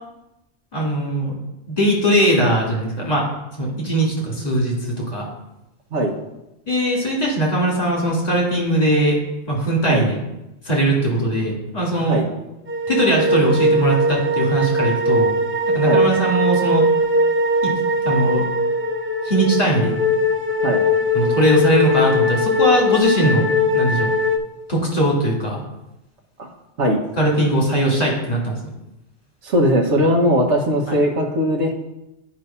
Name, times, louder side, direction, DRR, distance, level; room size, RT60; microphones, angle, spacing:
voice 1, 0.7-1.4 1.7-3.3 3.6-5.3 6.7-9.2 9.5-10.2 10.6-12.2 12.9-15.3 15.7-16.8 17.6-17.7 18.0-18.4 19.2-20.0 21.1-24.1 24.7-25.6 27.2-28.6 30.9-31.0, right 1 dB, 35° left, -3 dB, 2.2 m, -20 dB
sound 1, 12.7-24.4, left 1 dB, 20° right, 0.4 m, -20 dB
voice 2, 29.4-31.7, equal, 85° right, -2 dB, 1.2 m, -19 dB
9.4 x 3.2 x 5.5 m, 0.92 s
omnidirectional pair, 1.1 m